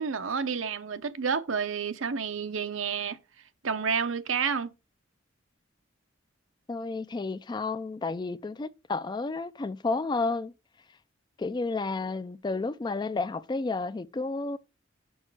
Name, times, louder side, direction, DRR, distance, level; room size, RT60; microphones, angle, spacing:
voice 1, 0.0-3.2 3.6-4.7, right 6 dB, 85° right, 0.8 m, -30 dB
voice 2, 6.7-10.5 11.4-14.6, left 3 dB, 20° left, 0.3 m, -31 dB
6.3 x 4.9 x 4.6 m
head